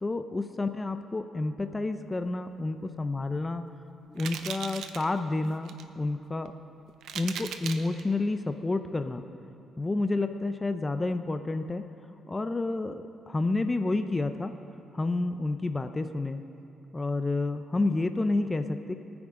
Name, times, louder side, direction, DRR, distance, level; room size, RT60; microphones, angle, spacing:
voice 1, 0.0-3.6 4.1-6.5 7.1-9.2 9.8-11.8 12.3-14.5 14.9-16.4 16.9-18.9, left 2 dB, 20° left, 8 dB, 0.6 m, -30 dB
sound 1, 3.2-3.5 4.2-5.1 5.4-5.8 6.5-6.6 7.0-8.0, right 8 dB, 80° right, 0.7 m, -38 dB
24.5 x 9.7 x 3.8 m, 2.7 s
cardioid pair, 90°, 0 cm